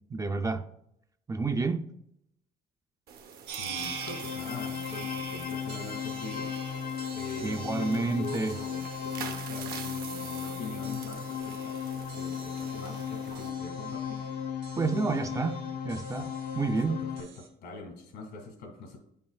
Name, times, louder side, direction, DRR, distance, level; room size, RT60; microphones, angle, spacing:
voice 1, 0.1-0.6 1.3-1.8 7.4-8.5 14.8-15.6 15.8-17.0, right 3 dB, 20° right, 0.4 m, -29 dB
sound 1, 3.1-13.5, right 7 dB, 65° right, 0.8 m, -46 dB
sound 2, 3.5-17.5, right 7 dB, 85° right, 1.2 m, -46 dB
voice 2, 3.6-6.5 7.1-11.8 12.1-14.2 16.2-16.3 16.6-19.0, left 3 dB, 80° left, 1.7 m, -43 dB
sound 3, 3.6-17.2, left 7 dB, 60° left, 0.5 m, -36 dB
8.3 x 5.4 x 2.3 m
cardioid pair, 110°, 17 cm